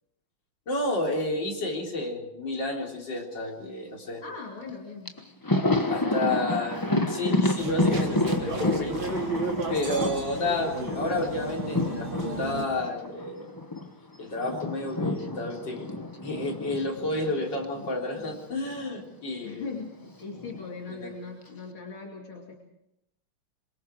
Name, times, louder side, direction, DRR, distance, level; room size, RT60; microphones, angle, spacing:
voice 1, 0.7-4.2 5.9-6.8 7.1-9.0 9.7-13.5 14.2-15.9 16.2-19.6 20.9-21.1, left 2 dB, 60° left, -1 dB, 4.5 m, -31 dB
voice 2, 4.2-5.2 5.8-6.3 8.8-9.0 19.4-22.5, left 4 dB, 75° left, -1 dB, 3.5 m, -40 dB
Thunder, 4.7-4.8 5.1-13.9 14.1-18.5 18.7-18.9 20.0-20.7, left 2 dB, 15° left, 0.8 m, -30 dB
sound 1, 7.6-12.7, right 2 dB, 70° right, 4.0 m, -33 dB
26.5 x 23.5 x 4.7 m, 0.83 s
omnidirectional pair, 2.3 m